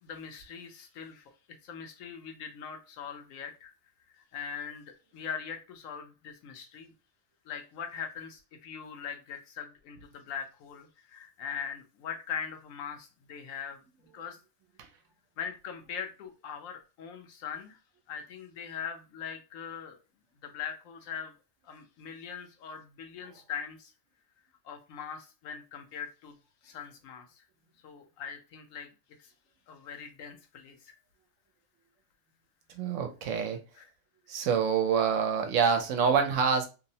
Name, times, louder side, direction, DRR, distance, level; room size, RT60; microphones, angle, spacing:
voice 1, 0.0-1.3 1.6-3.7 4.1-6.9 7.5-13.8 14.1-14.4 15.4-17.8 18.1-20.0 20.4-21.3 21.6-23.9 24.6-26.3 26.6-27.4 27.8-28.9 29.2-29.3 29.7-31.0 33.8-33.9, left 7 dB, 90° left, 5 dB, 1.0 m, -41 dB
voice 2, 32.7-33.6 34.3-36.7, right 6 dB, 75° right, 6 dB, 0.9 m, -26 dB
2.8 x 2.0 x 2.7 m, 0.31 s
omnidirectional pair, 1.4 m